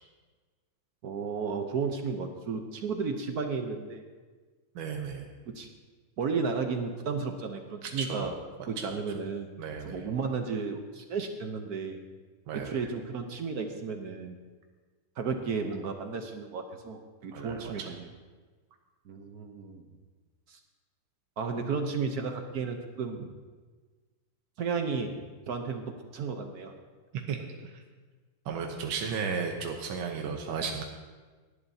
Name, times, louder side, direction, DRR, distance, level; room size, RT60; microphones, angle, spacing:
voice 1, 1.0-4.0 5.5-5.7 6.2-8.3 8.7-9.5 9.8-12.0 12.5-14.4 15.2-18.1 19.1-19.8 20.5-20.6 21.4-23.3 24.6-26.7, right 5 dB, 60° right, 5 dB, 1.1 m, -33 dB
voice 2, 4.8-5.3 7.8-8.3 8.8-8.9 9.6-10.1 12.5-12.8 17.3-17.9 27.3-27.4 27.7-27.8 28.5-30.8, right 6 dB, 80° right, 2 dB, 1.7 m, -34 dB
18.0 x 11.0 x 2.8 m, 1.4 s
omnidirectional pair, 2.2 m